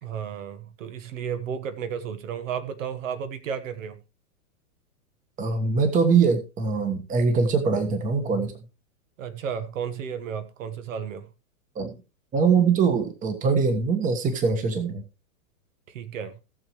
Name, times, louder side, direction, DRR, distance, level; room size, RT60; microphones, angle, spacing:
voice 1, 0.0-4.0 9.2-11.3 15.9-16.4, right 7 dB, 60° right, 1.4 m, -33 dB
voice 2, 5.4-8.5 11.7-12.0 12.3-15.0, right 5 dB, 20° right, 1.4 m, -22 dB
18.0 x 6.8 x 3.1 m
hypercardioid pair, 150°, 43 cm